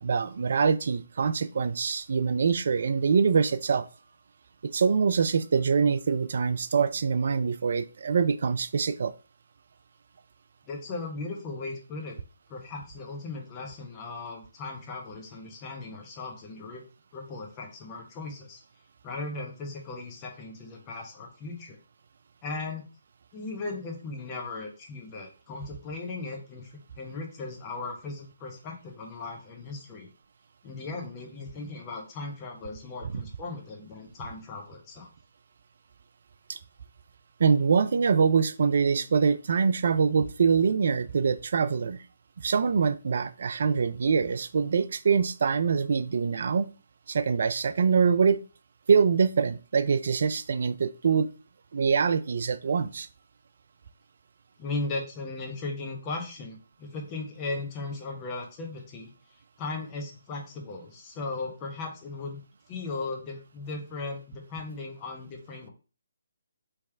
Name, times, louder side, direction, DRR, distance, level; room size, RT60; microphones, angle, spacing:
voice 1, 0.0-3.9 4.6-9.1 33.1-33.2 36.5-36.6 37.4-42.0 42.4-46.7 47.1-48.4 48.9-51.3 51.7-53.1, right 5 dB, 55° right, 0.3 m, -24 dB
voice 2, 10.6-12.2 12.5-16.8 17.1-18.6 19.0-21.8 22.4-22.8 23.3-30.1 30.6-35.1 54.6-59.1 59.6-62.4 62.7-65.7, left 3 dB, 25° left, 1.0 m, -37 dB
3.5 x 3.1 x 3.3 m
figure-of-eight pair, 145°, 0 cm